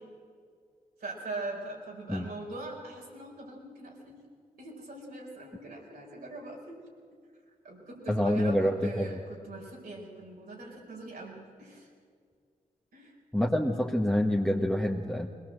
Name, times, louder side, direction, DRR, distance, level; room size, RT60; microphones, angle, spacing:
voice 1, 1.0-4.2 4.6-6.8 7.6-11.9 12.9-13.1, right 2 dB, 85° right, -3 dB, 4.7 m, -41 dB
voice 2, 8.1-9.2 13.3-15.3, left 1 dB, 5° left, 0 dB, 1.4 m, -27 dB
21.0 x 18.0 x 7.8 m, 2.1 s
cardioid pair, 50°, 15 cm